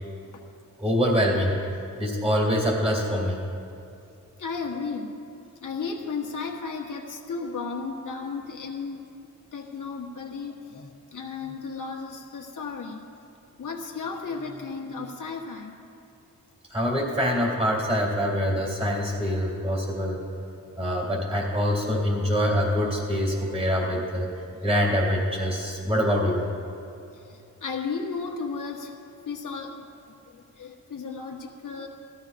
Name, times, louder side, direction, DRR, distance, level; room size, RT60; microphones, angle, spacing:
voice 1, 0.8-1.5 2.0-3.4 16.7-20.2 20.8-24.3 24.6-26.4, equal, 20° right, -2 dB, 2.9 m, -24 dB
voice 2, 4.4-5.2 5.6-9.0 9.5-13.0 13.6-15.8 21.7-21.8 27.1-28.9 29.2-29.8 30.1-31.9, left 4 dB, 70° left, 0 dB, 1.4 m, -34 dB
18.5 x 13.5 x 2.6 m, 2.6 s
wide cardioid pair, 140°, 33 cm